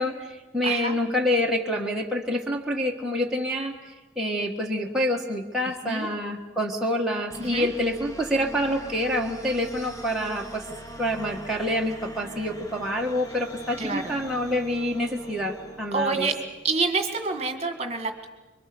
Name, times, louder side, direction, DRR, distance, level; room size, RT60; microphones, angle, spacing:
voice 1, 0.0-3.7 4.2-10.6 11.0-16.3, equal, ahead, -3 dB, 1.5 m, -27 dB
voice 2, 0.6-1.0 5.8-6.1 7.4-7.7 13.8-14.0 15.9-16.3 16.6-18.3, right 4 dB, 35° right, 6 dB, 1.8 m, -27 dB
sound 1, 7.3-16.7, right 1 dB, 15° left, 1.5 m, -42 dB
26.0 x 23.0 x 6.9 m, 1.1 s
head